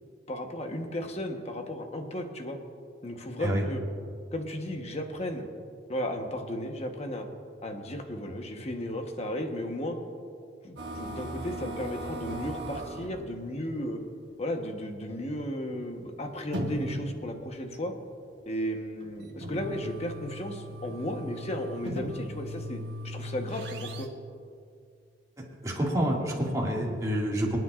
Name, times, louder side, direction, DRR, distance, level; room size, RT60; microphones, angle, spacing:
voice 1, 0.3-2.6 3.0-3.8 4.3-5.5 5.9-7.3 7.6-10.0 10.6-14.0 14.4-17.9 18.5-24.1, equal, 35° left, 4 dB, 1.1 m, -34 dB
sound 1, 10.8-13.2 14.0-14.1 14.5-14.6 15.6-15.7 16.4-17.5 19.0-24.1, equal, 75° right, 1.1 m, -38 dB
voice 2, 25.6-27.6, equal, 20° right, -3 dB, 2.1 m, -28 dB
26.5 x 9.2 x 2.5 m, 2.3 s
head